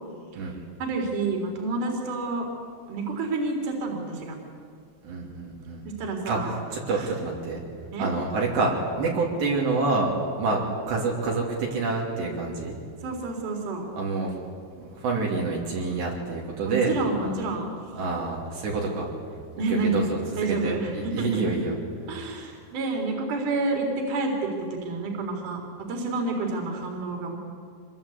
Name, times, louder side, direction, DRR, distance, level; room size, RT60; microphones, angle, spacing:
voice 1, 0.8-2.5 2.9-4.3 6.0-6.6 6.9-7.1 7.9-8.1 13.0-13.9 16.7-17.7 19.6-20.0 20.4-21.6 22.1-25.6 25.9-27.4, right 3 dB, 45° right, 2 dB, 4.6 m, -29 dB
voice 2, 5.0-5.8 6.3-6.4 6.7-7.6 8.0-10.6 10.9-12.7 13.9-14.4 14.8-17.0 17.2-17.4 17.9-19.1 19.7-21.7, right 3 dB, 60° right, -3 dB, 4.9 m, -27 dB
26.0 x 21.5 x 8.5 m, 2.1 s
omnidirectional pair, 5.8 m